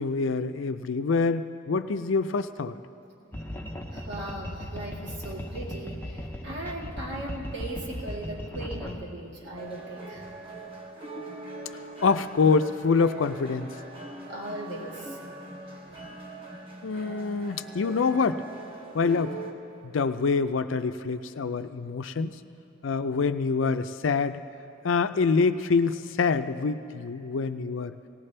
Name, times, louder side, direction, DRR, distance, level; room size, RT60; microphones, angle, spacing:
voice 1, 0.0-2.7 12.0-13.7 16.8-18.4 18.9-19.3 19.8-22.4 22.8-24.4 24.8-27.9, left 4 dB, 75° left, 10 dB, 0.5 m, -25 dB
sound 1, 3.3-9.0, equal, 10° left, 0.7 m, -37 dB
voice 2, 3.9-10.3 14.3-15.2 15.8-16.1, right 1 dB, 60° right, -3 dB, 1.9 m, -38 dB
sound 2, 9.6-19.5, right 2 dB, 30° right, 1.2 m, -42 dB
18.5 x 17.0 x 3.3 m, 2.7 s
head